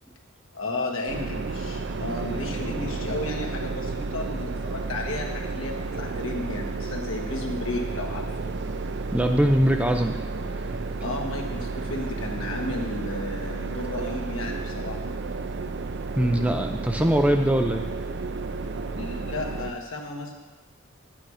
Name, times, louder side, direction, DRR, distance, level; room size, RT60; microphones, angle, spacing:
voice 1, 0.5-8.3 11.0-15.0 19.0-20.3, left 2 dB, 70° left, 1 dB, 1.6 m, -33 dB
sound 1, 1.1-19.7, right 3 dB, 55° right, 0.5 m, -32 dB
voice 2, 9.1-10.2 16.2-17.8, equal, 5° right, 5 dB, 0.4 m, -22 dB
9.7 x 9.1 x 4.9 m, 1.2 s
head